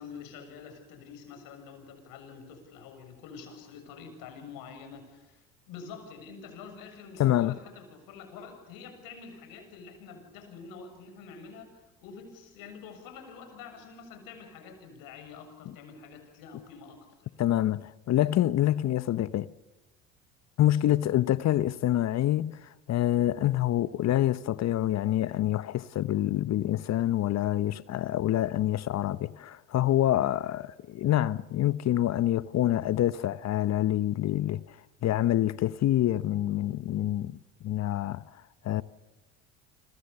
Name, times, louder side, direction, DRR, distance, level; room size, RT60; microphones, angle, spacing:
voice 1, 0.0-17.3, left 5 dB, 65° left, 7.2 m, -47 dB
voice 2, 7.2-7.5 17.4-19.5 20.6-34.6 35.0-38.2 38.6-38.8, left 13 dB, 45° left, 0.9 m, -26 dB
29.5 x 25.5 x 7.0 m
hypercardioid pair, 70°, 36 cm